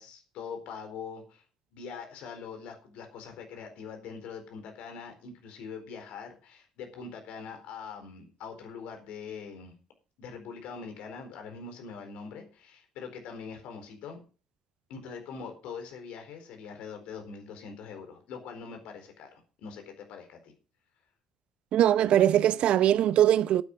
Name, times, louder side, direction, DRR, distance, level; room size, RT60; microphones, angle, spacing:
voice 1, 0.0-1.4 1.7-9.7 10.2-14.2 14.9-20.5, left 5 dB, 70° left, 4.3 m, -43 dB
voice 2, 21.7-23.6, right 11 dB, 60° right, 0.6 m, -21 dB
11.5 x 9.4 x 6.1 m
hypercardioid pair, 55°, 2 cm